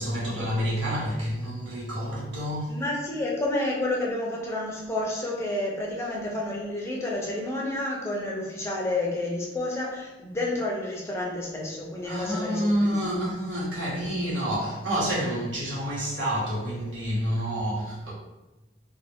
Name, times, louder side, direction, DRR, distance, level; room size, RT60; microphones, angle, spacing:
voice 1, 0.0-2.8 12.0-18.1, equal, 85° right, -7 dB, 1.1 m, -28 dB
voice 2, 2.7-13.0, left 2 dB, 15° left, -2 dB, 0.4 m, -30 dB
2.4 x 2.1 x 3.2 m, 1.0 s
head